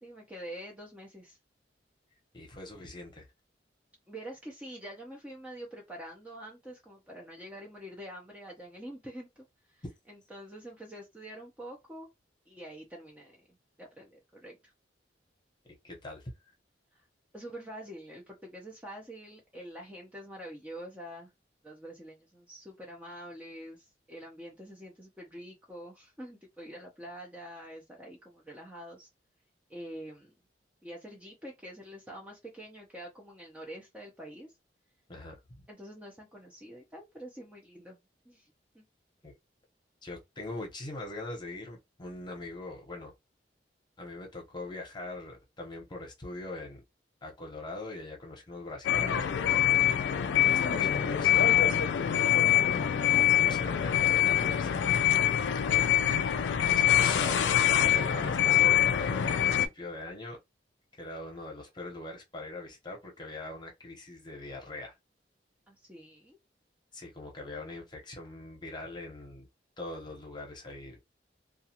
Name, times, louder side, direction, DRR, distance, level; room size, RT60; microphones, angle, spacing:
voice 1, 0.0-1.4 4.1-12.1 12.5-14.7 16.9-17.0 17.3-21.3 21.6-29.1 29.7-30.4 30.8-34.5 35.7-38.0 38.3-38.8 65.7-66.4, equal, 10° right, 0.6 m, -46 dB
voice 2, 2.3-3.3 15.8-16.3 35.1-35.6 39.2-39.3 40.0-43.1 44.0-46.8 47.2-49.2 50.3-51.9 53.1-54.9 56.6-60.4 60.9-65.0 66.9-69.5 69.8-71.0, left 2 dB, 25° left, 0.9 m, -42 dB
sound 1, 48.8-59.7, left 10 dB, 90° left, 0.3 m, -25 dB
2.4 x 2.3 x 2.8 m
head